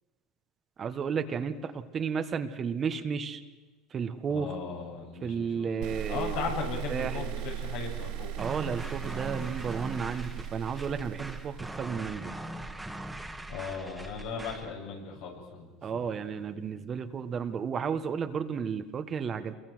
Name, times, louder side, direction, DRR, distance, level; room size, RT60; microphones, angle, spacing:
voice 1, 0.8-3.4 3.9-4.6 5.2-6.4 6.9-7.2 8.4-12.3 15.8-19.5, right 6 dB, 40° right, 9 dB, 1.5 m, -33 dB
voice 2, 4.3-8.5 13.5-16.1, left 5 dB, 75° left, 0 dB, 6.8 m, -37 dB
sound 1, 5.8-12.9, right 11 dB, 70° right, 4.2 m, -38 dB
sound 2, 8.4-14.7, right 1 dB, 5° right, 1.9 m, -41 dB
28.0 x 22.5 x 6.4 m, 1.3 s
supercardioid pair, 100°, 0 cm